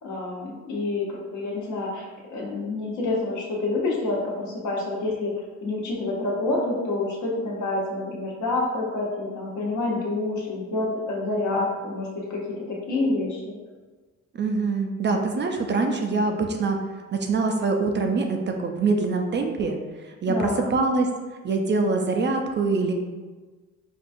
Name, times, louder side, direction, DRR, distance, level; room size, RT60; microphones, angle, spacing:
voice 1, 0.0-5.3 5.6-13.5 20.3-20.7, left 2 dB, 70° left, -3 dB, 1.0 m, -28 dB
voice 2, 14.3-16.8 17.1-19.8 20.2-21.1 21.4-22.9, right 3 dB, 40° right, 4 dB, 0.4 m, -24 dB
4.3 x 2.3 x 2.6 m, 1.3 s
cardioid pair, 90°, 30 cm